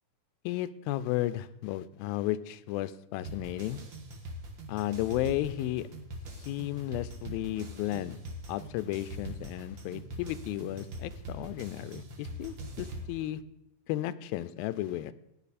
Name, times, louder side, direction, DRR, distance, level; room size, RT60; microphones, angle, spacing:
voice 1, 0.5-3.8 4.7-5.9 6.4-8.2 8.5-13.4 13.9-15.1, left 14 dB, 90° left, 14 dB, 2.4 m, -33 dB
sound 1, 3.2-13.1, equal, 50° right, 1.4 m, -43 dB
15.5 x 9.9 x 4.2 m, 0.83 s
omnidirectional pair, 4.1 m